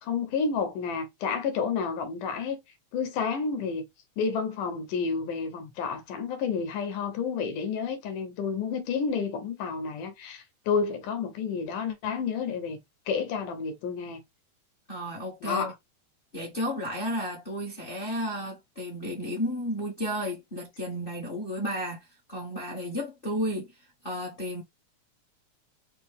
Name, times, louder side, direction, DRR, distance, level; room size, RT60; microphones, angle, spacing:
voice 1, 0.0-2.6 2.9-3.9 4.2-12.8 13.1-14.2 15.4-15.7, left 5 dB, 85° left, 2.7 m, -30 dB
voice 2, 14.9-15.7 16.3-23.7 24.0-24.6, equal, 35° left, 0.9 m, -33 dB
5.5 x 2.7 x 3.5 m
omnidirectional pair, 3.6 m